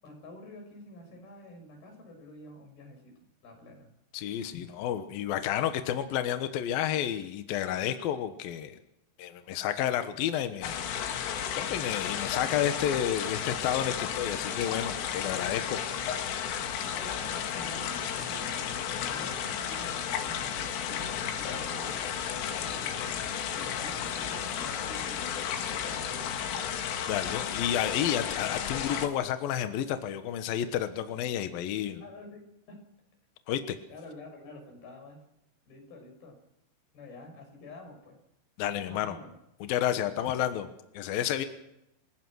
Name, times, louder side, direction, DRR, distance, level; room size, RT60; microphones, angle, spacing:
voice 1, 0.0-3.1 3.4-3.9 16.9-18.6 19.1-22.0 22.5-23.2 23.5-26.4 32.0-32.4 32.7-32.8 33.9-35.2 35.7-36.4 36.9-38.2 38.7-39.3, left 2 dB, 50° left, 3 dB, 8.1 m, -48 dB
voice 2, 4.1-8.8 9.2-15.8 27.1-32.0 33.5-33.8 38.6-39.2 39.6-40.7 40.9-41.4, left 10 dB, 70° left, 8 dB, 2.4 m, -31 dB
sound 1, 10.6-29.1, left 8 dB, 90° left, 4.5 m, -33 dB
28.0 x 18.0 x 6.3 m, 0.85 s
omnidirectional pair, 5.6 m